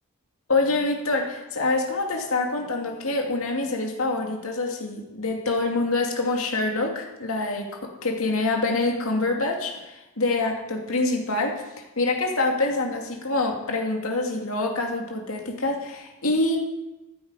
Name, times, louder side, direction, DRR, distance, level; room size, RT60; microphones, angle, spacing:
voice 1, 0.5-11.6 12.0-16.6, left 2 dB, 70° left, 2 dB, 2.3 m, -26 dB
14.0 x 9.6 x 4.9 m, 0.99 s
head